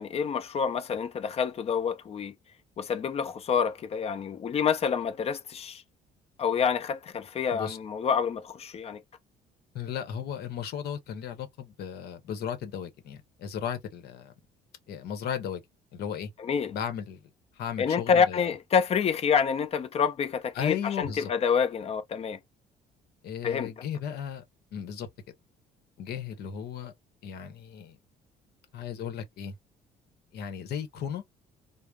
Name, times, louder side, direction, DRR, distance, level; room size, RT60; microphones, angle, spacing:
voice 1, 0.0-2.3 2.8-5.8 6.4-9.0 16.4-16.7 17.8-22.4 23.4-23.7, left 6 dB, 35° left, 0.6 m, -27 dB
voice 2, 9.7-14.3 14.9-15.6 15.9-16.3 16.7-17.2 17.5-18.5 20.5-21.3 23.2-24.4 24.7-25.1 26.0-26.9 27.2-28.0 28.7-29.6 30.3-31.2, left 8 dB, 70° left, 0.9 m, -35 dB
3.1 x 2.1 x 2.3 m
cardioid pair, 110°, 17 cm